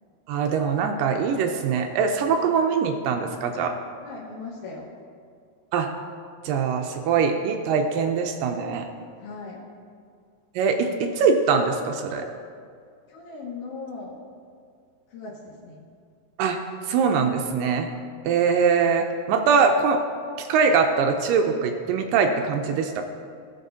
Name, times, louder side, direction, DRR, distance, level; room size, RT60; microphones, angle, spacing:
voice 1, 0.3-3.8 5.7-5.9 6.5-8.9 10.6-12.3 16.4-16.6 16.9-17.9 18.3-20.0 20.4-23.0, right 5 dB, 80° right, 4 dB, 2.0 m, -22 dB
voice 2, 4.0-4.9 9.2-9.6 13.1-14.1 15.1-15.8, left 4 dB, 75° left, -6 dB, 3.2 m, -38 dB
18.0 x 6.9 x 2.7 m, 2.2 s
omnidirectional pair, 4.4 m